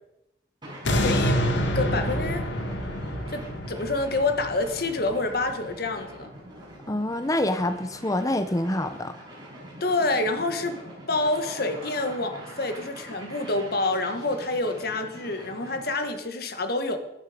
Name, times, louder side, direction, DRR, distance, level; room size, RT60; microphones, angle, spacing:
sound 1, 0.6-16.0, right 1 dB, 25° right, 5.7 m, -44 dB
sound 2, 0.8-6.0 6.4-6.5, equal, 85° left, 2.0 m, -27 dB
voice 1, 1.0-1.4 1.7-2.4 3.3-6.3 9.8-10.8 11.1-17.0, left 2 dB, 55° left, 7 dB, 1.7 m, -27 dB
voice 2, 6.9-9.1, left 1 dB, 20° left, 9 dB, 0.8 m, -26 dB
14.5 x 11.0 x 5.2 m, 0.86 s
head